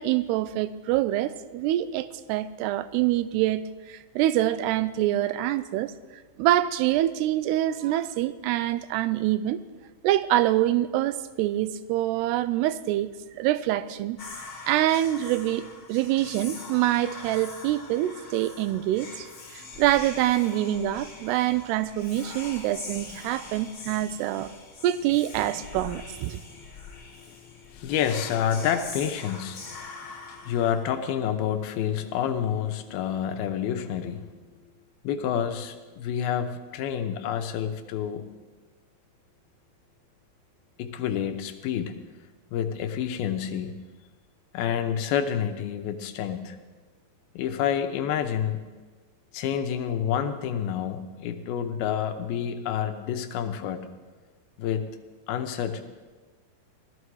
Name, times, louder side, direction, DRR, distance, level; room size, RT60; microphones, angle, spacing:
voice 1, 0.0-5.9 6.4-9.6 10.0-13.1 13.4-14.2 14.7-15.6 15.9-19.3 19.5-24.5 24.8-26.4, right 14 dB, 85° right, 2.6 m, -25 dB
Whispering, 14.2-31.3, left 4 dB, 45° left, 1.4 m, -43 dB
voice 2, 26.6-34.4 35.0-38.3 40.8-42.0 42.5-43.8 44.5-46.6 47.3-48.6 49.3-53.9 54.6-54.9 55.3-55.8, left 9 dB, 75° left, 2.5 m, -29 dB
17.0 x 13.0 x 4.7 m
omnidirectional pair, 4.8 m